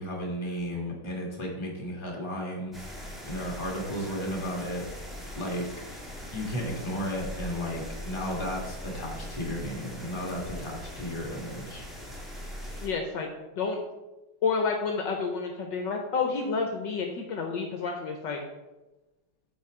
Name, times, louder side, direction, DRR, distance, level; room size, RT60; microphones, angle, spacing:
voice 1, 0.0-4.8 5.3-5.7 6.3-11.9, equal, 15° left, -1 dB, 1.4 m, -34 dB
sound 1, 2.7-12.9, equal, ahead, 1.1 m, -41 dB
voice 2, 12.8-13.3 13.6-13.8 14.4-18.4, left 4 dB, 70° left, 3 dB, 1.3 m, -29 dB
8.8 x 4.1 x 4.8 m, 1.1 s
omnidirectional pair, 2.2 m